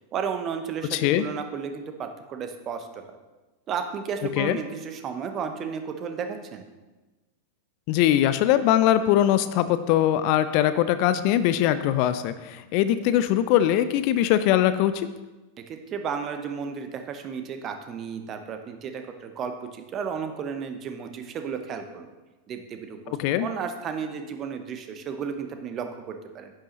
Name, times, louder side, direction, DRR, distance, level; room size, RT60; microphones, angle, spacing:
voice 1, 0.1-3.0 3.7-6.6 15.6-22.1 22.5-23.2 23.4-26.5, right 6 dB, 30° right, 7 dB, 1.0 m, -33 dB
voice 2, 0.9-1.2 4.4-4.6 7.9-15.1 23.2-23.5, left 12 dB, 45° left, 13 dB, 0.4 m, -21 dB
10.5 x 8.9 x 3.1 m, 1.2 s
figure-of-eight pair, 90°, 0 cm